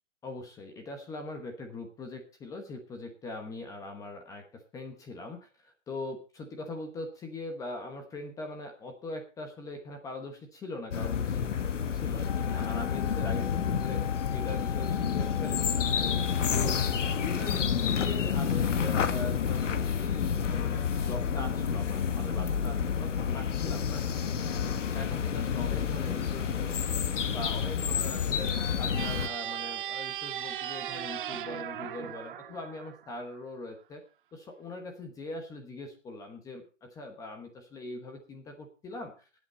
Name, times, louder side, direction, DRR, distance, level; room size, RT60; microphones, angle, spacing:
voice 1, 0.2-14.0 14.3-16.1 16.5-16.8 17.1-24.1 24.9-26.9 27.3-28.5 28.8-34.0 34.3-39.1, left 2 dB, 10° left, 5 dB, 1.0 m, -41 dB
sound 1, 10.9-29.3, left 7 dB, 85° left, 1.3 m, -29 dB
Wind instrument woodwind instrument, 12.2-17.7, left 13 dB, 30° left, 0.8 m, -42 dB
sound 2, 28.9-33.4, right 11 dB, 45° right, 0.7 m, -37 dB
17.0 x 8.4 x 4.2 m, 0.34 s
hypercardioid pair, 160°, 36 cm